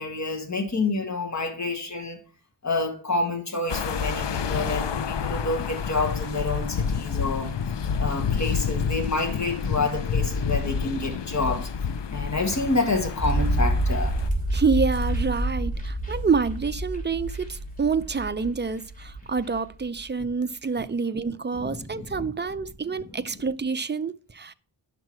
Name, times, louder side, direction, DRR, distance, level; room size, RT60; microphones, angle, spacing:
voice 1, 0.0-2.2 2.6-7.5 8.0-11.7 12.1-14.2 21.5-22.3 22.9-23.0, left 3 dB, 35° left, 1.8 m, -28 dB
sound 1, 3.7-14.3, left 6 dB, 65° left, 0.6 m, -29 dB
sound 2, 13.2-19.7 20.0-20.1, right 1 dB, 20° left, 3.1 m, -27 dB
voice 2, 14.5-24.5, right 5 dB, 25° right, 0.5 m, -27 dB
10.5 x 6.0 x 4.6 m
wide cardioid pair, 85°, 46 cm